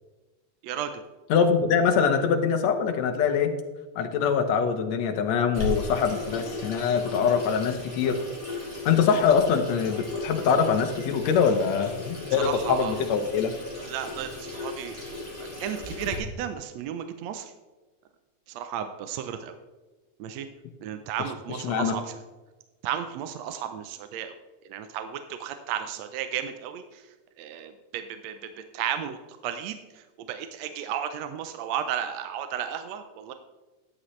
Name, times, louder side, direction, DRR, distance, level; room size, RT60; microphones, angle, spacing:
voice 1, 0.6-1.0 12.3-12.9 13.8-15.0 15.4-17.5 18.5-19.6 20.2-20.5 20.8-22.1 22.8-24.3 24.7-33.3, right 9 dB, 75° right, 8 dB, 1.7 m, -34 dB
voice 2, 1.3-3.5 4.0-8.2 8.9-13.5 21.6-21.9, left 6 dB, 70° left, 6 dB, 2.2 m, -23 dB
Water tap faucet / Sink (filling or washing), 5.5-16.2, left 2 dB, 10° right, 2.4 m, -36 dB
13.0 x 9.9 x 3.2 m, 1.2 s
omnidirectional pair, 3.5 m